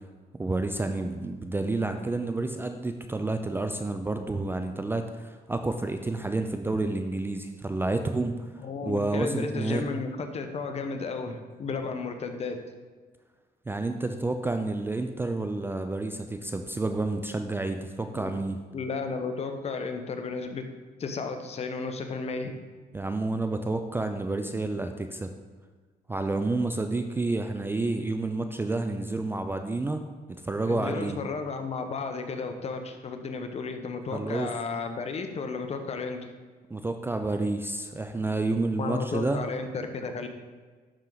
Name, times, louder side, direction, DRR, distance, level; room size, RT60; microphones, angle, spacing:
voice 1, 0.4-8.5 8.8-9.8 13.7-18.6 22.9-25.3 26.1-30.0 30.4-31.2 34.1-34.5 36.7-39.4, right 2 dB, 15° right, 7 dB, 0.4 m, -29 dB
voice 2, 8.6-12.6 18.1-18.3 18.7-20.6 21.0-22.5 30.6-36.3 38.8-40.3, left 4 dB, 40° left, 6 dB, 0.9 m, -33 dB
11.5 x 4.5 x 3.9 m, 1.4 s
cardioid pair, 110°, 17 cm